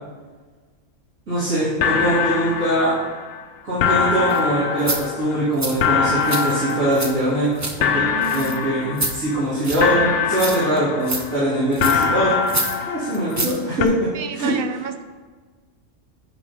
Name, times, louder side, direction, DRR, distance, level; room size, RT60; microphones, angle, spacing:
voice 1, 1.3-3.0 3.6-7.5 7.8-8.0 8.3-12.4 12.9-13.9 14.3-14.5, right 1 dB, 90° right, -12 dB, 2.8 m, -22 dB
sound 1, 1.4-1.5 1.8-3.4 3.8-7.5 7.8-9.4 9.8-11.4 11.8-13.5 13.8-13.9, left 6 dB, 70° left, 0.9 m, -23 dB
sound 2, 4.3-4.4 4.8-5.0 5.6-5.8 6.2-7.1 7.4-7.7 8.2-8.6 9.0-9.2 9.6-9.9 10.3-10.8 11.0-11.2 11.7-12.1 12.5-12.8 13.1-13.6 13.9-14.0, right 2 dB, 20° right, 0.4 m, -27 dB
voice 2, 8.1-8.6 14.1-15.0, right 6 dB, 55° right, 7 dB, 0.7 m, -30 dB
8.4 x 3.7 x 5.8 m, 1.4 s
omnidirectional pair, 1.3 m